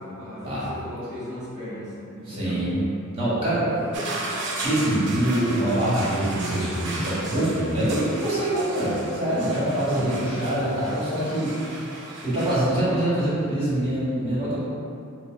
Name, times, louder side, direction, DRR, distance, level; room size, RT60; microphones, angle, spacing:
voice 1, 0.0-2.6 3.6-4.4 9.5-10.6 11.6-12.1, equal, 5° right, -15 dB, 0.7 m, -37 dB
voice 2, 2.3-2.8 3.1-3.7 4.6-11.7 12.2-14.6, right 1 dB, 25° right, -10 dB, 1.5 m, -24 dB
sound 1, 3.9-12.6, right 2 dB, 55° right, 0.6 m, -35 dB
4.4 x 2.2 x 3.7 m, 2.5 s
head